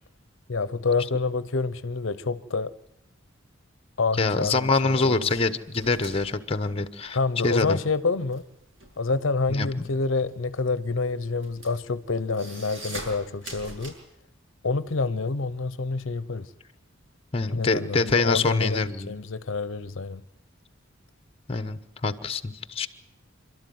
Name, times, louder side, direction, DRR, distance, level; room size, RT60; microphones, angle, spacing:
voice 1, 0.5-2.7 4.0-5.3 7.1-8.4 9.0-13.9 14.6-16.5 17.5-20.2, left 3 dB, 70° left, 0.7 m, -27 dB
voice 2, 4.2-7.2 7.4-7.8 9.5-9.9 17.3-19.1 21.5-22.9, left 3 dB, 30° left, 1.0 m, -25 dB
sound 1, 5.3-7.5 7.8-13.9, right 1 dB, 65° right, 6.9 m, -42 dB
27.5 x 12.5 x 9.4 m
head